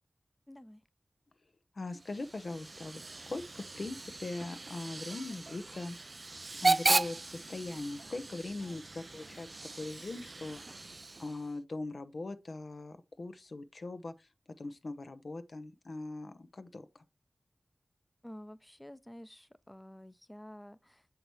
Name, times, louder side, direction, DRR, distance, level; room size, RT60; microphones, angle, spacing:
voice 1, 0.5-0.8 18.2-21.1, left 1 dB, 15° left, 0.7 m, -50 dB
voice 2, 1.7-6.0 6.6-9.5 9.8-10.6 11.2-14.3 14.6-17.0, left 2 dB, 70° left, 0.8 m, -41 dB
Hiss / Train / Alarm, 1.9-11.6, right 3 dB, 50° right, 0.4 m, -36 dB
6.8 x 5.8 x 3.1 m
wide cardioid pair, 50°, 0 cm